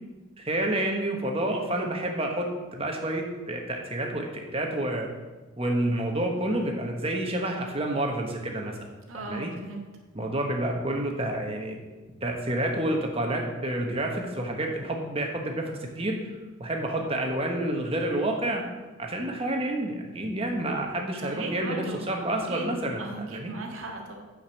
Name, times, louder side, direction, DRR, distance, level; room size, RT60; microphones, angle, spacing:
voice 1, 0.4-5.1 5.6-8.7 9.1-9.5 10.1-11.8 12.2-16.2 16.6-18.6 19.0-23.5, right 1 dB, 30° right, 2 dB, 1.2 m, -29 dB
voice 2, 9.1-9.9 21.2-22.2 22.5-22.7 23.0-24.2, right 2 dB, 80° right, 1 dB, 1.7 m, -37 dB
8.9 x 5.2 x 6.4 m, 1.3 s
head